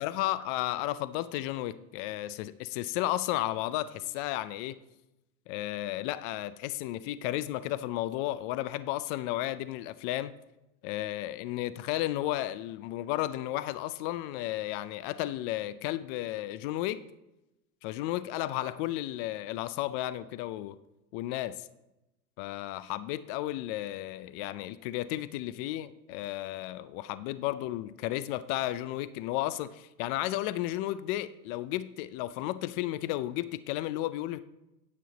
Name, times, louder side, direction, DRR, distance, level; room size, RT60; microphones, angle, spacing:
voice 1, 0.0-4.8 5.5-10.3 10.8-17.0 17.8-20.8 21.1-21.6 22.4-34.4, left 15 dB, 40° left, 15 dB, 0.4 m, -33 dB
9.5 x 7.6 x 3.8 m, 0.93 s
hypercardioid pair, 115°, 45 cm